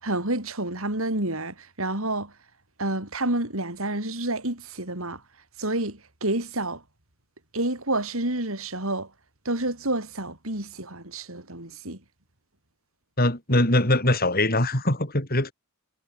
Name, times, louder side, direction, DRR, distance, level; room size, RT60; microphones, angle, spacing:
voice 1, 0.0-2.3 2.8-5.2 5.6-6.8 7.5-9.1 9.5-12.0, right 2 dB, 65° right, 5.6 m, -29 dB
voice 2, 13.2-15.5, left 1 dB, 40° left, 7.7 m, -22 dB
head